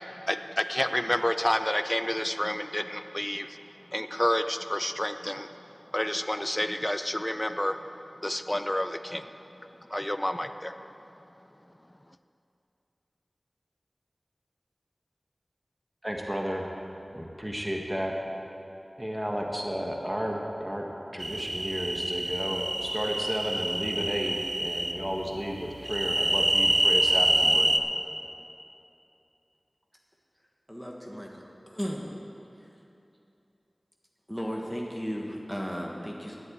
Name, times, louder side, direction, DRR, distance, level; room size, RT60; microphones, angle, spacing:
voice 1, 0.3-3.5 3.9-5.5 5.9-7.8 8.2-9.2 9.9-10.7, left 1 dB, 20° left, 9 dB, 0.4 m, -29 dB
voice 2, 16.0-16.7 17.1-18.1 19.0-20.9 21.1-24.3 24.6-27.7, equal, 15° right, 0 dB, 1.4 m, -32 dB
sound 1, 21.2-24.9 25.9-27.8, right 1 dB, 50° right, 0.6 m, -26 dB
voice 3, 30.7-32.1 34.3-36.4, equal, ahead, -1 dB, 1.2 m, -35 dB
10.5 x 7.8 x 8.5 m, 2.8 s
wide cardioid pair, 60°, 0 cm